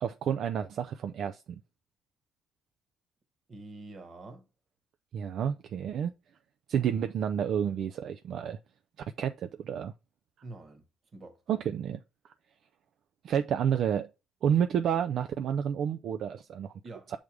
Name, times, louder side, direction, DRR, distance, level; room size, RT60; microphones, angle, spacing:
voice 1, 0.0-1.6 5.1-6.1 6.7-8.6 9.2-9.9 11.5-12.0 13.2-14.1 14.4-16.7, right 8 dB, 70° right, 0.3 m, -30 dB
voice 2, 3.5-4.5 10.4-10.9 11.1-11.7 16.8-17.1, right 2 dB, 45° right, 1.4 m, -46 dB
6.3 x 3.6 x 4.7 m
cardioid pair, 90°, 0 cm